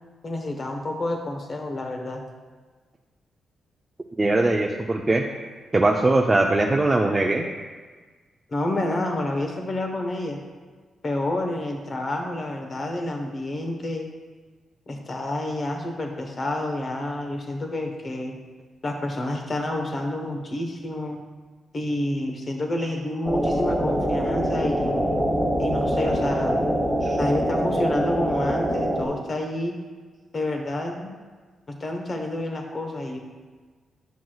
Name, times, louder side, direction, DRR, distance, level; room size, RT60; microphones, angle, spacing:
voice 1, 0.2-2.2 8.5-10.4 11.0-14.1 14.9-18.4 18.8-21.2 21.7-25.0 25.6-26.7 27.2-29.8 30.3-31.1 31.7-33.2, left 1 dB, 45° left, 3 dB, 1.1 m, -29 dB
voice 2, 4.2-5.2 5.7-7.4 27.0-27.2, right 2 dB, 25° right, 0 dB, 0.5 m, -21 dB
sound 1, 23.3-29.1, equal, 5° right, 1.3 m, -24 dB
9.3 x 6.0 x 2.3 m, 1.4 s
cardioid pair, 65°, 0 cm